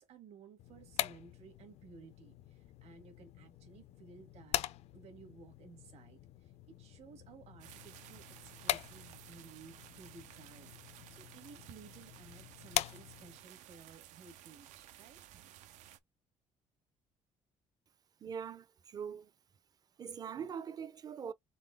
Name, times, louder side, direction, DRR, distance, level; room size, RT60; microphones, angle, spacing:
voice 1, 0.0-4.6 4.9-15.2, right 5 dB, 60° right, 1.4 m, -57 dB
sound 1, 0.6-13.5, left 13 dB, 60° left, 0.4 m, -43 dB
sound 2, 7.6-16.0, right 12 dB, 90° right, 0.6 m, -56 dB
voice 2, 18.2-19.3 20.0-21.3, right 7 dB, 30° right, 0.5 m, -42 dB
4.0 x 3.6 x 3.4 m
cardioid pair, 130°, 12 cm